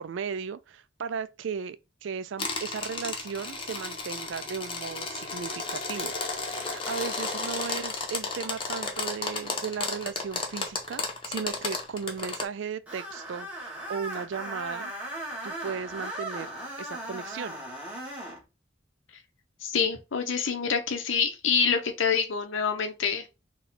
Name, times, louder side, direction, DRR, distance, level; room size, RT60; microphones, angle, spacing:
voice 1, 0.0-6.1 6.5-14.9 15.4-16.5 16.8-17.6, right 6 dB, 80° right, 0.4 m, -36 dB
sound 1, 2.4-12.4, left 3 dB, 25° left, 0.8 m, -33 dB
Screech, 12.9-18.4, right 1 dB, 5° right, 1.3 m, -37 dB
voice 2, 19.6-23.3, left 6 dB, 85° left, 0.7 m, -26 dB
4.2 x 2.3 x 4.1 m
head